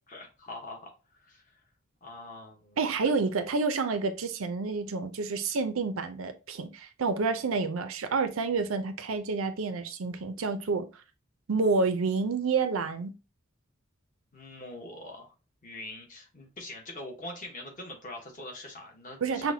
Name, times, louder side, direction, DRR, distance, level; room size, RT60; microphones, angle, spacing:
voice 1, 0.1-1.6 2.0-2.8 14.3-15.3 15.6-19.5, left 2 dB, 40° left, 1.1 m, -43 dB
voice 2, 2.8-10.9 11.5-13.1 19.2-19.5, right 4 dB, 90° right, 0.5 m, -29 dB
5.7 x 2.2 x 2.7 m
head